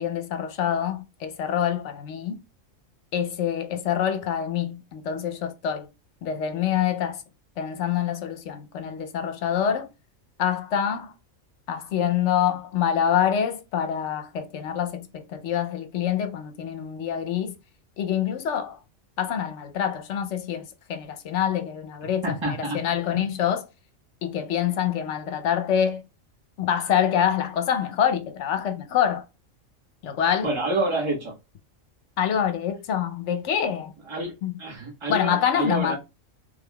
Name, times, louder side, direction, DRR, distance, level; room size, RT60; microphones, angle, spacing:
voice 1, 0.0-2.4 3.1-5.9 6.2-7.2 7.6-9.9 10.4-11.1 11.7-17.5 18.0-18.8 19.2-23.6 24.2-26.0 26.6-29.2 30.0-30.5 32.2-33.9 34.4-34.6 35.1-36.0, left 9 dB, 70° left, 0.9 m, -26 dB
voice 2, 22.2-22.8 23.1-23.3 30.4-31.3 34.1-34.3 34.6-36.0, right 1 dB, 25° right, 1.3 m, -28 dB
3.5 x 3.4 x 2.2 m
omnidirectional pair, 1.3 m